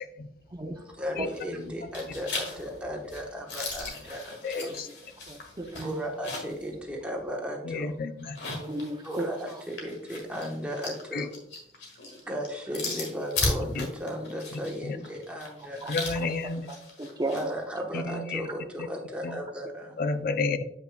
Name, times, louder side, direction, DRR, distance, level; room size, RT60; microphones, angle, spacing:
voice 1, 0.8-4.8 5.1-5.2 5.8-8.0 9.0-11.3 12.3-16.3 17.3-20.0, equal, 5° right, -1 dB, 1.1 m, -36 dB
sound 1, 1.2-1.6 1.9-6.6 7.0-7.1 8.2-17.5, left 3 dB, 75° left, 1.7 m, -37 dB
voice 2, 4.4-4.9 7.6-8.4 11.1-11.3 13.8-13.9 14.8-15.0 15.9-16.7 17.9-18.4 19.2-19.4 20.0-20.6, left 3 dB, 55° left, 10 dB, 0.5 m, -31 dB
voice 3, 5.3-6.0 8.5-9.3 15.8-15.9 16.7-17.6, right 1 dB, 25° right, 5 dB, 0.6 m, -34 dB
7.7 x 5.5 x 2.3 m, 0.74 s
head